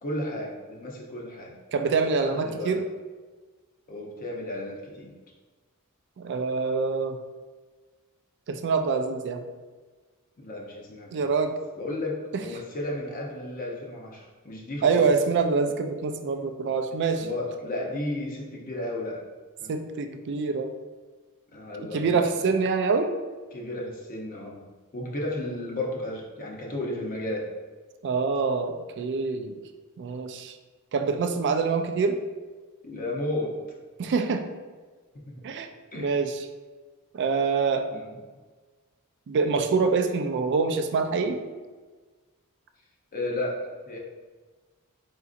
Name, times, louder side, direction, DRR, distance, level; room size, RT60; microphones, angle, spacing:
voice 1, 0.0-1.5 2.2-2.8 3.9-5.2 10.4-11.3 11.8-15.1 17.1-19.2 19.6-19.7 21.5-22.4 23.5-24.7 24.9-27.5 32.8-33.6 35.1-35.4 35.9-36.2 37.9-38.1 43.1-44.0, left 1 dB, 40° left, -2 dB, 0.6 m, -33 dB
voice 2, 1.7-2.8 6.2-7.2 8.5-9.4 11.1-11.5 14.8-17.3 19.7-20.7 21.8-23.1 28.0-29.6 30.0-30.6 30.9-32.2 34.0-34.4 35.4-35.7 36.0-36.5 37.1-37.9 39.3-41.4, right 4 dB, 50° right, 7 dB, 0.4 m, -25 dB
3.9 x 3.8 x 2.4 m, 1.4 s
head